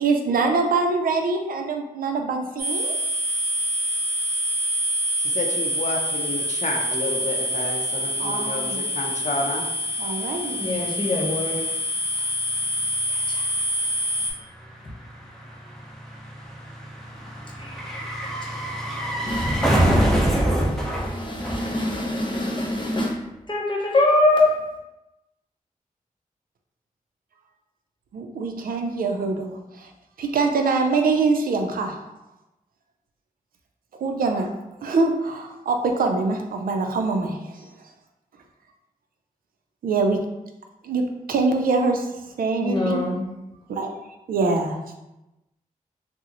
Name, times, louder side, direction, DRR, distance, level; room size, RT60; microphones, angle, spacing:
voice 1, 0.0-3.0 8.2-8.9 10.0-10.6 28.1-29.9 30.2-32.1 33.9-34.5 34.8-37.9 39.8-40.2 40.8-43.0 43.7-43.9 44.3-44.8, right 3 dB, 80° right, 4 dB, 0.4 m, -24 dB
sound 1, 2.6-14.3, equal, 15° right, 1.2 m, -26 dB
voice 2, 5.2-9.7, left 2 dB, 55° left, 2 dB, 0.5 m, -30 dB
voice 3, 10.6-11.6 13.1-13.6 17.6-18.6 19.3-23.2 23.5-24.6 42.6-43.2, left 2 dB, 35° left, -2 dB, 0.9 m, -25 dB
sound 2, 11.7-11.8 12.0-22.4 22.6-22.7, right 1 dB, 5° left, 0.8 m, -26 dB
3.6 x 2.0 x 2.9 m, 0.95 s
cardioid pair, 50°, 15 cm